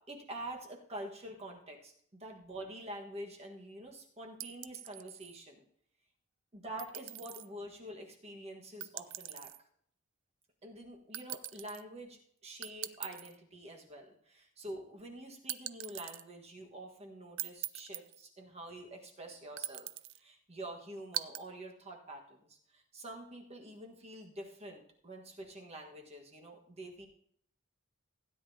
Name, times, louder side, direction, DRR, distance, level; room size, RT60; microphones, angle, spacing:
voice 1, 0.1-1.9 2.2-5.6 6.5-9.5 10.6-19.9 20.1-27.1, right 1 dB, 30° right, 1 dB, 1.5 m, -47 dB
sound 1, 4.4-5.4 6.8-7.5 8.8-9.6 11.1-11.8 12.6-13.4 15.5-16.2 17.4-18.2 19.6-20.2 21.1-21.4, right 14 dB, 65° right, 0.5 m, -41 dB
16.5 x 9.4 x 2.8 m, 0.64 s
head